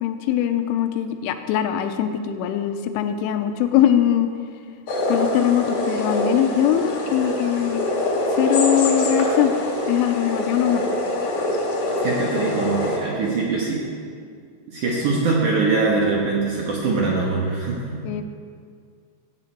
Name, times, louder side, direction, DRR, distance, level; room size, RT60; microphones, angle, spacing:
voice 1, 0.0-4.3 5.1-7.8 8.3-9.5 9.9-10.9 18.0-18.2, left 11 dB, 85° left, 8 dB, 3.1 m, -21 dB
sound 1, 4.9-13.0, left 1 dB, 55° left, 2.2 m, -24 dB
voice 2, 12.0-13.8 14.7-18.0, right 3 dB, 75° right, -3 dB, 1.8 m, -22 dB
16.5 x 9.0 x 4.5 m, 2.2 s
omnidirectional pair, 5.6 m